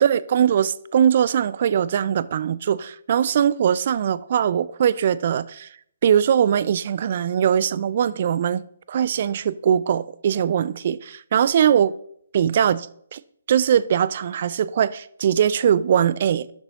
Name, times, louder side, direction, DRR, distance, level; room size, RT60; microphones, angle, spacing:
voice 1, 0.0-5.7 6.0-8.6 8.9-11.0 11.3-11.9 12.3-13.2 13.5-16.5, right 9 dB, 45° right, 0.4 m, -21 dB
12.0 x 6.9 x 3.0 m
figure-of-eight pair, 135°, 0 cm